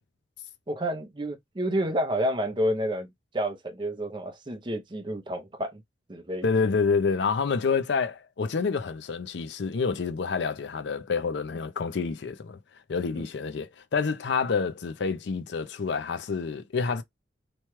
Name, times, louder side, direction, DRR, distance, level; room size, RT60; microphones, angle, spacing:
voice 1, 0.7-3.1 3.3-5.8 6.1-6.5 13.1-13.3, equal, 25° right, 0.6 m, -29 dB
voice 2, 6.4-12.6 12.9-17.0, left 5 dB, 65° left, 0.4 m, -28 dB
3.0 x 2.3 x 3.0 m
head